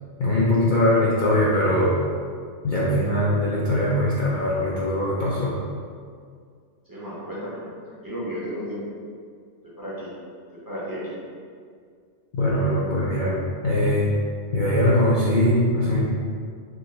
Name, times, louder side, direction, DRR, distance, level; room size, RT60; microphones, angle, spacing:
voice 1, 0.2-1.9 2.6-5.6 12.3-13.4 13.6-14.1 14.5-16.0, left 1 dB, 55° left, -7 dB, 0.5 m, -21 dB
voice 2, 6.9-7.6 7.9-8.8 9.6-10.1 10.5-11.1, equal, 20° right, -9 dB, 0.8 m, -33 dB
3.6 x 3.0 x 2.8 m, 2.1 s
omnidirectional pair, 1.2 m